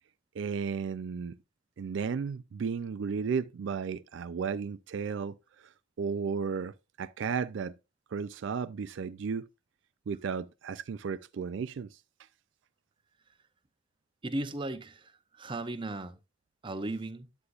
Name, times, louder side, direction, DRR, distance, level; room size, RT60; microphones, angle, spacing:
voice 1, 0.3-1.3 1.8-5.7 6.0-7.7 8.1-9.5 10.1-12.0, right 6 dB, 70° right, 0.4 m, -34 dB
voice 2, 14.2-16.2 16.6-17.3, right 2 dB, 25° right, 0.7 m, -36 dB
9.6 x 8.1 x 2.4 m
head